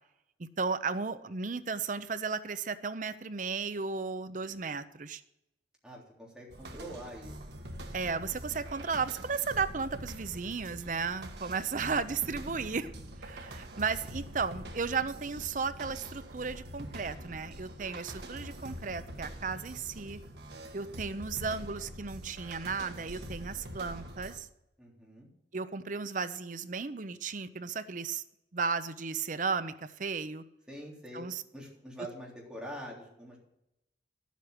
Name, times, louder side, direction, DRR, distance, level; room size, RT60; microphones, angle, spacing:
voice 1, 0.4-5.2 7.9-12.9 13.2-20.2 20.7-24.5 25.5-28.2 28.5-30.4 31.1-31.4, right 5 dB, 45° right, 13 dB, 0.7 m, -34 dB
voice 2, 5.8-7.3 20.7-21.2 24.8-25.3 30.7-31.3 31.5-33.4, equal, 5° right, -3 dB, 3.5 m, -45 dB
sound 1, 6.5-24.4, equal, 70° right, 1.5 m, -44 dB
11.0 x 8.3 x 6.0 m, 0.85 s
head